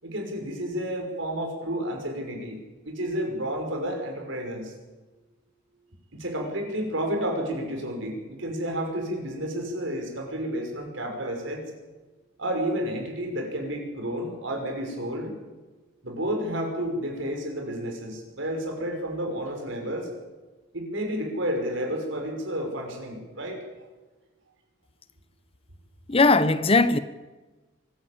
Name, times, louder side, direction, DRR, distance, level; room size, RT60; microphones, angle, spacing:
voice 1, 0.0-4.7 6.1-11.6 12.4-15.4 16.0-20.1 20.7-23.6, equal, 65° right, 5.9 m, -31 dB
voice 2, 26.1-27.0, left 3 dB, 30° left, 0.8 m, -19 dB
24.0 x 15.5 x 8.7 m
head